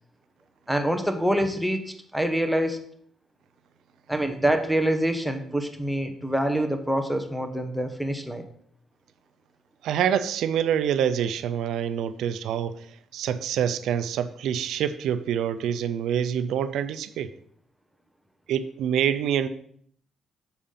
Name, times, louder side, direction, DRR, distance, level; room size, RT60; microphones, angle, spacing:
voice 1, 0.7-2.8 4.1-8.5, right 1 dB, ahead, 5 dB, 1.0 m, -26 dB
voice 2, 9.8-12.8 13.1-17.3 18.5-19.5, right 9 dB, 85° right, 11 dB, 0.5 m, -26 dB
7.1 x 5.0 x 5.6 m, 0.64 s
cardioid pair, 115°, 0 cm